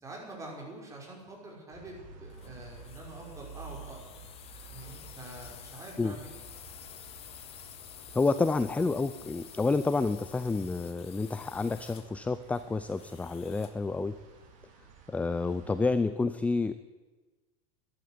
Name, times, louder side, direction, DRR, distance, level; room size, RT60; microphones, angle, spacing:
voice 1, 0.0-4.1 4.7-6.4, right 2 dB, 15° right, -2 dB, 5.6 m, -46 dB
sound 1, 1.7-16.0, right 4 dB, 45° right, 4.2 m, -52 dB
sound 2, 2.3-13.9, left 11 dB, 35° left, 1.1 m, -51 dB
voice 2, 8.1-14.1 15.1-16.7, left 3 dB, 10° left, 13 dB, 0.4 m, -29 dB
12.0 x 11.5 x 9.6 m, 1.3 s
supercardioid pair, 130°, 18 cm